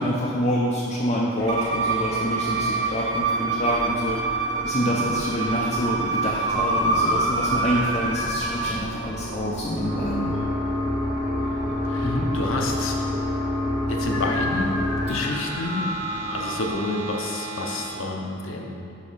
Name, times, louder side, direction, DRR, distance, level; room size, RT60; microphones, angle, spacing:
voice 1, 0.0-4.2 4.6-10.4 12.0-12.3, equal, 30° left, -4 dB, 0.5 m, -26 dB
sound 1, 1.4-17.9, left 1 dB, 30° right, 1.0 m, -30 dB
Bowed string instrument, 1.5-8.8, right 5 dB, 55° right, 0.6 m, -27 dB
sound 2, 6.5-8.4 14.1-16.8, equal, 85° left, 1.1 m, -28 dB
voice 2, 11.4-13.0 13.8-14.7 15.1-16.0 16.3-18.8, left 2 dB, 70° left, 1 dB, 0.7 m, -30 dB
5.1 x 4.8 x 5.5 m, 2.6 s
head